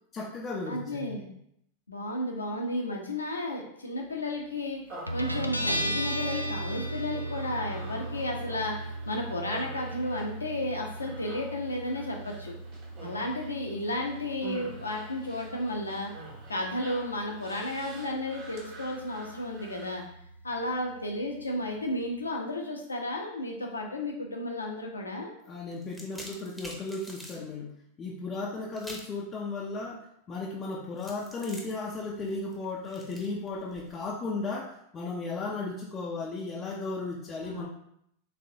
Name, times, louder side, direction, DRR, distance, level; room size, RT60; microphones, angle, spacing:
voice 1, 0.1-1.3 25.5-37.7, left 3 dB, 25° left, -3 dB, 0.5 m, -35 dB
voice 2, 0.7-1.3 1.9-4.8 5.1-12.6 13.0-16.1 16.5-20.0 20.4-25.3 37.4-37.7, left 1 dB, 80° left, 1 dB, 0.8 m, -33 dB
Human voice, 4.9-20.0, right 2 dB, 40° right, 1.4 m, -48 dB
Guitar, 5.1-22.3, right 1 dB, 90° right, 0.3 m, -38 dB
sound 1, 25.7-27.4 28.8-29.2 31.0-34.1, equal, ahead, 0.9 m, -46 dB
4.2 x 3.3 x 2.7 m, 0.74 s
figure-of-eight pair, 90°, 0 cm